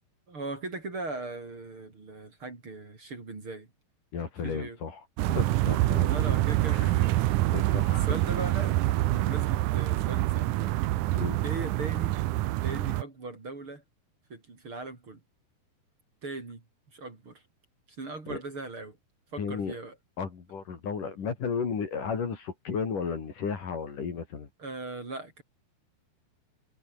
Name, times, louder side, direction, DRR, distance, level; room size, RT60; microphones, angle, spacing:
voice 1, 0.3-3.7 4.4-4.8 6.0-7.1 8.0-8.8 9.1-10.7 11.4-12.1 12.6-13.8 14.3-15.2 16.2-16.6 16.9-17.4 18.0-19.0 19.3-19.9 24.6-25.4, right 3 dB, 35° right, 4.9 m, -39 dB
voice 2, 4.1-5.0 5.3-6.4 6.7-6.9 7.5-8.1 11.1-11.4 18.3-18.4 19.4-19.7 20.2-24.5, left 6 dB, 55° left, 5.0 m, -34 dB
sound 1, 5.2-13.0, right 16 dB, 75° right, 1.9 m, -26 dB
omnidirectional pair, 4.4 m